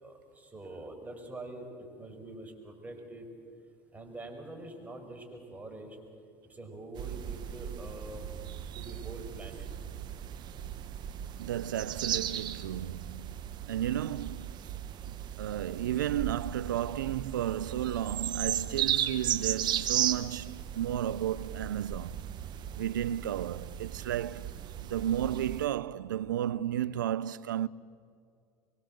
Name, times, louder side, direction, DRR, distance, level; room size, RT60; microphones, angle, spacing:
voice 1, 0.0-1.7 2.0-3.3 3.9-6.0 6.5-8.2 8.7-9.7, right 2 dB, 15° right, 5.5 m, -45 dB
sound 1, 7.0-25.7, right 10 dB, 45° right, 1.2 m, -36 dB
voice 2, 11.4-13.4 13.7-14.6 15.4-22.2 22.8-24.5 24.9-27.7, right 11 dB, 85° right, 0.5 m, -33 dB
24.0 x 23.0 x 7.8 m
hypercardioid pair, 75°, 10 cm